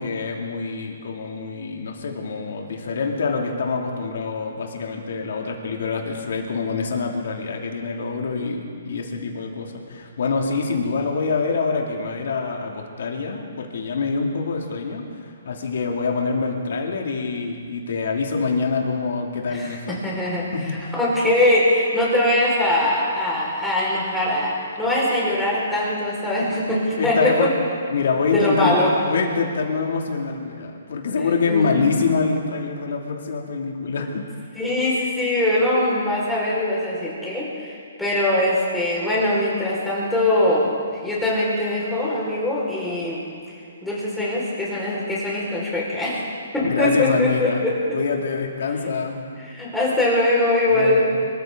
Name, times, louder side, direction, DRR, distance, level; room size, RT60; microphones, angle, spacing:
voice 1, 0.0-20.0 20.5-20.8 27.0-27.5 27.9-28.8 29.0-34.2 46.6-47.6 47.9-49.3 50.7-51.2, left 4 dB, 65° left, 1 dB, 2.9 m, -25 dB
voice 2, 19.5-20.5 20.9-27.5 28.3-28.9 31.5-31.7 34.6-43.2 43.8-46.3 46.5-47.8 49.5-51.1, left 1 dB, 5° left, -7 dB, 5.5 m, -22 dB
25.5 x 14.0 x 4.0 m, 2.3 s
hypercardioid pair, 150°, 0 cm